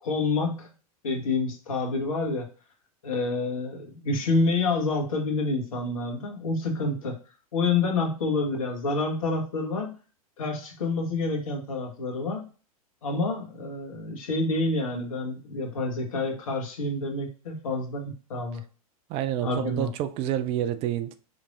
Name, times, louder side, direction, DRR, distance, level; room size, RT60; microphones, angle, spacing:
voice 1, 0.0-0.7 1.0-2.5 3.0-7.2 7.5-10.0 10.4-12.5 13.0-18.6 19.4-19.9, left 3 dB, 65° left, 1.3 m, -28 dB
voice 2, 19.1-21.2, right 11 dB, 30° right, 0.4 m, -28 dB
5.1 x 3.3 x 2.4 m
figure-of-eight pair, 90°, 19 cm